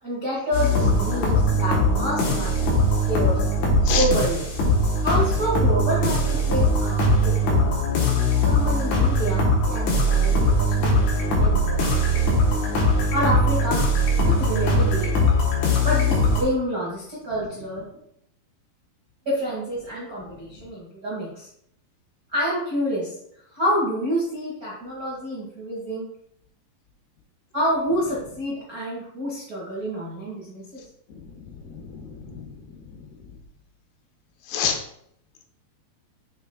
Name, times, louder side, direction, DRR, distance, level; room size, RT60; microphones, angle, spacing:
voice 1, 0.0-3.5 4.0-4.4 5.0-7.7 8.4-12.2 13.1-13.8 14.2-15.1 15.8-17.8 19.2-21.5 22.3-23.1 23.5-26.0 27.5-30.8, equal, 80° right, -7 dB, 0.8 m, -28 dB
sound 1, 0.5-16.4, left 1 dB, 65° left, 2.2 m, -21 dB
voice 2, 31.7-32.5 34.5-34.8, left 7 dB, 80° left, 4 dB, 2.8 m, -28 dB
6.9 x 5.8 x 2.3 m, 0.72 s
omnidirectional pair, 4.7 m